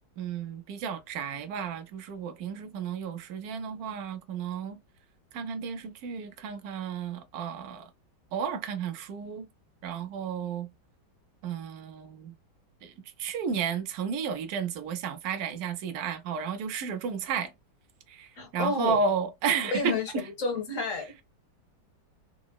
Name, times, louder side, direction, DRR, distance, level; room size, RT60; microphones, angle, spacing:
voice 1, 0.2-4.8 5.3-7.9 8.3-9.5 9.8-10.7 11.4-12.3 12.8-12.9 13.2-17.5 18.1-20.2, right 6 dB, 80° right, 0.8 m, -32 dB
voice 2, 18.4-19.0 19.7-21.2, left 3 dB, 55° left, 1.0 m, -30 dB
3.7 x 2.0 x 2.2 m
omnidirectional pair, 2.1 m